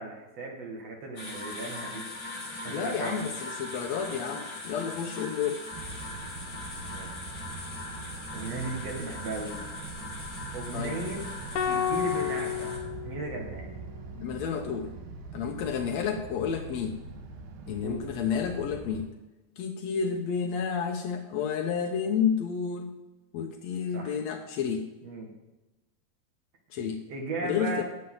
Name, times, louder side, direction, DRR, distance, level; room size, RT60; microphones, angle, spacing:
voice 1, 0.0-2.1 2.6-3.3 6.9-7.2 8.3-9.7 10.5-11.2 11.6-12.7 13.0-13.7 17.8-18.0 23.9-24.2 25.0-25.3 27.1-27.8, right 3 dB, 45° right, 0 dB, 2.8 m, -36 dB
sound 1, 1.2-12.8, left 2 dB, 50° left, 6.6 m, -40 dB
voice 2, 2.7-5.6 10.7-11.0 14.1-14.9 15.3-17.0 17.7-19.1 19.6-23.0 23.3-24.9 26.7-27.0 27.4-27.8, left 7 dB, 85° left, 4 dB, 1.5 m, -30 dB
sound 2, 5.7-19.1, right 4 dB, 75° right, 2.9 m, -43 dB
sound 3, 11.5-13.9, left 9 dB, 70° left, 2.0 m, -31 dB
18.5 x 7.7 x 4.0 m, 1.1 s
omnidirectional pair, 4.5 m